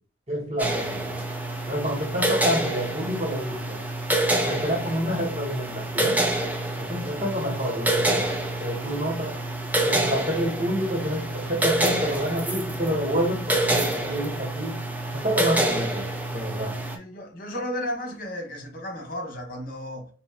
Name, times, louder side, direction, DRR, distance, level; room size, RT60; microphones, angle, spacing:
voice 1, 0.3-1.1 1.7-3.8 4.4-6.2 6.8-8.3 8.6-9.3 9.8-14.8 15.1-16.1 16.3-16.8, equal, 35° right, 1.2 m, -28 dB
sound 1, 0.6-17.0, right 1 dB, 10° right, 0.5 m, -27 dB
voice 2, 16.9-20.1, left 1 dB, 50° left, 1.3 m, -34 dB
4.1 x 3.0 x 2.4 m
head